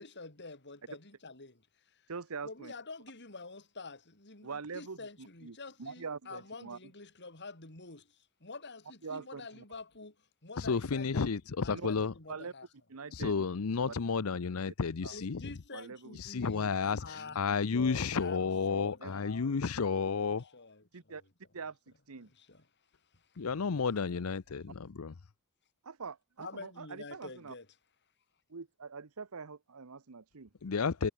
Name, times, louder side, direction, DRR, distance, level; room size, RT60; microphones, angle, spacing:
voice 1, 0.0-2.1 2.4-11.3 11.6-12.7 15.1-17.4 17.7-19.5 20.2-21.2 22.2-22.7 23.1-23.5 26.4-27.7, left 3 dB, 55° left, 5.0 m, -48 dB
voice 2, 2.1-2.7 4.4-6.8 9.0-9.6 11.7-11.9 12.3-12.5 12.9-13.4 13.9-14.0 15.0-15.2 15.7-16.2 19.0-19.1 20.9-21.2 21.5-21.8 22.1-22.3 25.8-27.5 28.5-30.5, right 5 dB, 80° right, 1.0 m, -44 dB
voice 3, 10.6-12.1 13.1-15.4 16.2-20.5 23.4-25.1 30.6-31.1, left 5 dB, 75° left, 0.6 m, -32 dB
head